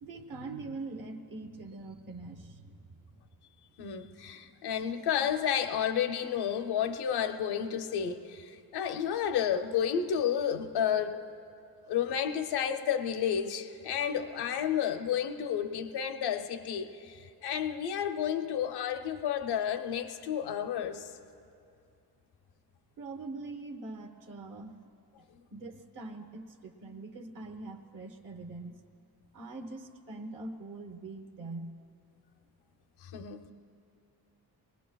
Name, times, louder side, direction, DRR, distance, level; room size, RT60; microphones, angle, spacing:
voice 1, 0.0-3.0 23.0-24.8 25.5-28.8 29.3-31.7, right 3 dB, 55° right, 3 dB, 1.0 m, -43 dB
voice 2, 3.8-11.2 11.9-21.1 33.0-33.5, left 8 dB, 80° left, 8 dB, 0.7 m, -31 dB
25.0 x 20.5 x 2.3 m, 2.6 s
wide cardioid pair, 160°, 39 cm